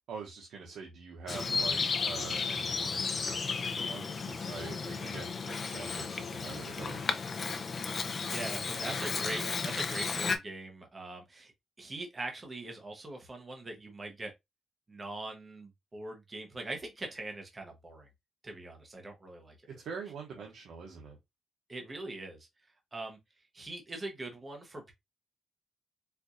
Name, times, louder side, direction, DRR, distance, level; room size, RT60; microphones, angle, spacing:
voice 1, 0.1-7.0 19.8-21.2, right 5 dB, 90° right, 0.8 m, -45 dB
Bird vocalization bird call bird song, 1.3-10.4, left 5 dB, 40° left, 0.6 m, -34 dB
voice 2, 8.0-11.5 11.8-14.3 14.9-18.1 18.4-19.6 21.7-24.9, right 2 dB, 25° right, 0.9 m, -42 dB
4.4 x 2.5 x 2.5 m
cardioid pair, 120°, 0 cm